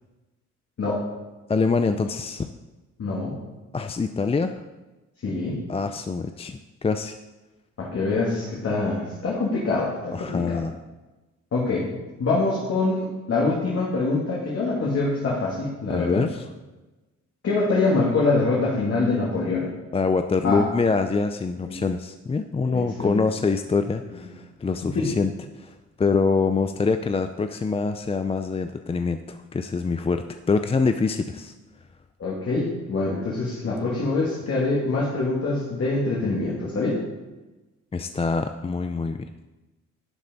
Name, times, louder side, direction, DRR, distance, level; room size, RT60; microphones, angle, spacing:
voice 1, 1.5-2.5 3.7-4.6 5.7-7.2 10.1-10.7 15.9-16.5 19.9-31.5 37.9-39.2, left 4 dB, 20° left, 8 dB, 0.5 m, -25 dB
voice 2, 3.0-3.4 5.2-5.6 7.8-10.6 11.5-11.9 12.2-16.2 17.4-19.7 20.4-20.6 21.6-21.8 22.7-23.3 24.9-25.1 32.2-37.0, left 3 dB, 50° left, -5 dB, 2.7 m, -24 dB
11.0 x 8.5 x 4.0 m, 1.1 s
cardioid pair, 90°, 30 cm